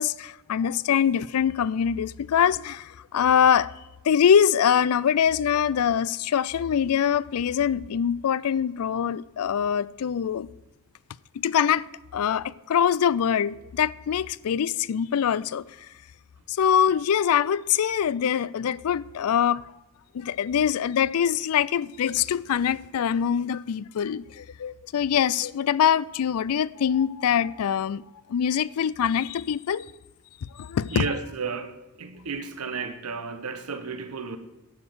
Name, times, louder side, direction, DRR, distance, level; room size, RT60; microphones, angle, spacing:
voice 1, 0.0-3.7 4.0-10.5 11.4-11.9 12.1-15.6 16.5-19.6 20.1-28.0 28.3-29.9 30.5-31.3, left 8 dB, 75° left, 0.4 m, -24 dB
voice 2, 30.9-34.4, right 5 dB, 90° right, 1.1 m, -33 dB
11.0 x 5.3 x 8.0 m
head